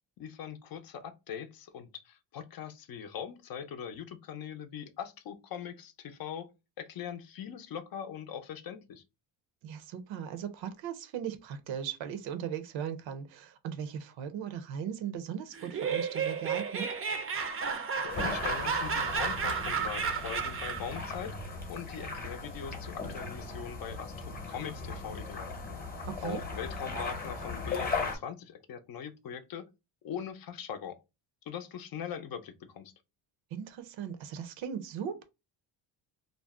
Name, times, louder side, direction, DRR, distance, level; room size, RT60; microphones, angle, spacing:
voice 1, 0.2-6.5 6.8-9.0 18.0-21.4 21.7-25.5 26.2-29.7 30.0-31.0 31.5-32.9, left 8 dB, 50° left, 0.5 m, -41 dB
voice 2, 9.6-16.9 26.1-26.4 33.5-35.2, right 8 dB, 70° right, 0.7 m, -38 dB
Laughter, 15.5-21.0, right 5 dB, 30° right, 0.5 m, -32 dB
sound 1, 18.1-28.2, left 4 dB, 20° left, 0.8 m, -38 dB
2.5 x 2.0 x 3.5 m
cardioid pair, 120°, 47 cm